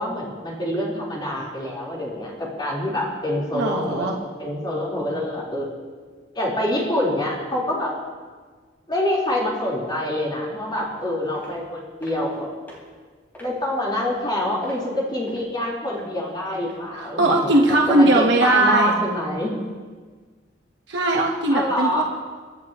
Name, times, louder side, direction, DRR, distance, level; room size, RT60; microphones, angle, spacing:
voice 1, 0.0-4.1 4.4-5.9 6.3-7.9 8.9-12.5 13.4-19.5 21.5-22.0, left 1 dB, 25° left, -5 dB, 3.9 m, -26 dB
voice 2, 3.5-4.1 16.9-18.9 20.9-22.0, right 2 dB, 75° right, -1 dB, 1.2 m, -19 dB
sound 1, 10.8-11.0 11.3-11.5 12.0-12.3 12.7-12.8 13.3-13.6 14.0-14.2 14.6-15.4 15.9-16.3 16.6-16.7 17.3-17.5 18.0-18.2 18.7-18.8 19.3-19.4, equal, 10° left, 4.4 m, -45 dB
24.0 x 11.5 x 3.0 m, 1.5 s
head